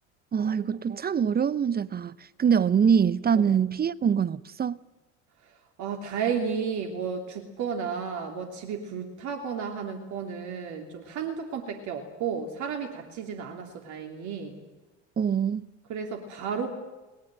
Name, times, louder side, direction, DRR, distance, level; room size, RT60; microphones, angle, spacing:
voice 1, 0.3-4.8 15.2-15.7, right 7 dB, 25° right, 0.8 m, -24 dB
voice 2, 5.4-14.6 15.9-16.7, right 6 dB, 55° right, 3.1 m, -33 dB
29.5 x 20.0 x 7.6 m
hypercardioid pair, 65°, 35 cm